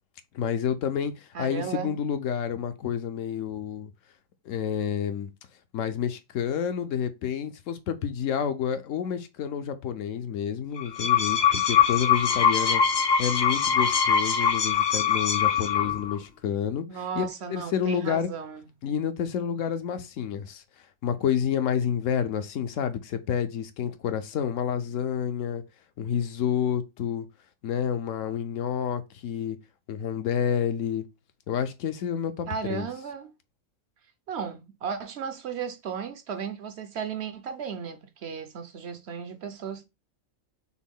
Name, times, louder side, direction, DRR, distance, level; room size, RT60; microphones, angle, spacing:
voice 1, 0.3-3.9 4.5-5.3 5.7-12.8 13.2-18.3 18.8-20.6 21.0-25.6 26.0-27.3 27.6-29.6 29.9-31.0 31.5-32.9, left 8 dB, 75° left, 0.9 m, -29 dB
voice 2, 1.3-2.0 16.9-18.6 32.5-33.3 34.3-39.9, right 7 dB, 60° right, 0.8 m, -35 dB
sound 1, 10.8-16.1, left 7 dB, 50° left, 0.5 m, -23 dB
6.1 x 2.2 x 3.6 m
omnidirectional pair, 1.4 m